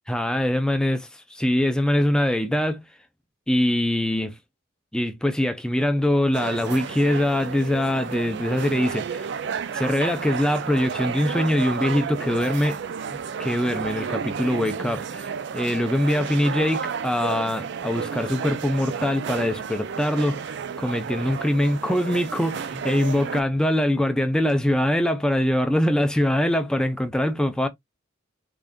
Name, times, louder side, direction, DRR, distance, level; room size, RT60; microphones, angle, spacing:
voice 1, 0.1-2.8 3.5-4.4 4.9-9.3 9.7-12.8 13.1-27.7, left 1 dB, 5° left, 0.4 m, -23 dB
sound 1, 6.3-23.4, right 6 dB, 55° right, 0.4 m, -32 dB
3.8 x 2.4 x 3.5 m
head